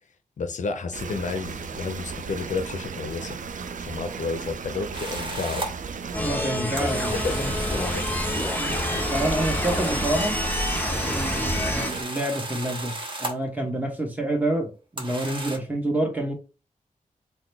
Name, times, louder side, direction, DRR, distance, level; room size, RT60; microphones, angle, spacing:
voice 1, 0.4-3.4 3.8-5.7 6.8-6.9 7.2-8.1 11.5-11.7, left 4 dB, 65° left, 0.4 m, -31 dB
sound 1, 0.9-12.0, right 5 dB, 70° right, 0.4 m, -35 dB
sound 2, 4.9-5.7 6.8-13.5 15.0-15.6, right 1 dB, 40° right, 1.0 m, -34 dB
sound 3, 6.1-11.9, left 1 dB, 15° left, 0.6 m, -28 dB
voice 2, 6.2-7.5 8.6-8.8 9.1-10.3 11.1-12.9 13.2-16.3, right 1 dB, 10° right, 1.1 m, -28 dB
3.8 x 2.1 x 3.3 m
wide cardioid pair, 75°, 14 cm